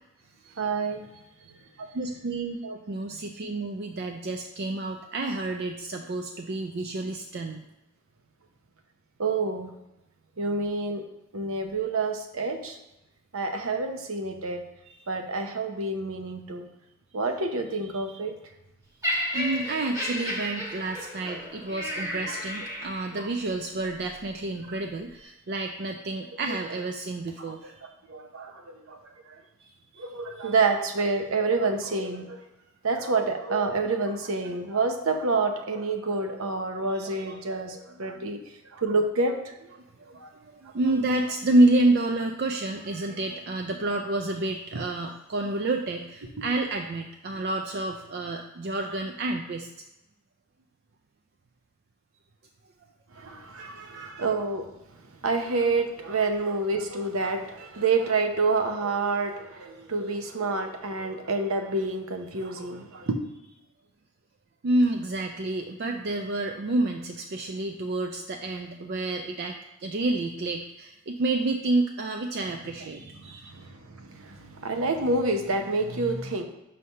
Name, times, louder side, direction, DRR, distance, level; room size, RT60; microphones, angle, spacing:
voice 1, 0.6-1.0 1.4-1.6 9.2-9.7 10.4-11.0 11.3-12.8 13.3-14.6 15.1-16.6 17.1-18.4 22.3-22.4 23.1-23.3 26.5-26.6 27.5-27.6 27.8-29.0 29.3-29.4 30.0-32.4 32.8-38.4 38.7-39.5 40.1-40.3 53.1-54.7 55.2-63.2 72.4-72.5 73.1-76.4, right 3 dB, 75° right, 5 dB, 0.8 m, -28 dB
voice 2, 1.8-7.6 19.3-27.8 29.6-30.1 30.3-30.5 38.2-38.3 40.1-49.7 53.6-54.3 64.6-73.5, right 2 dB, 50° right, 3 dB, 0.4 m, -29 dB
Laughter, 19.0-23.3 24.1-24.3, left 1 dB, 15° right, 1.4 m, -33 dB
5.6 x 3.3 x 5.4 m, 0.94 s
head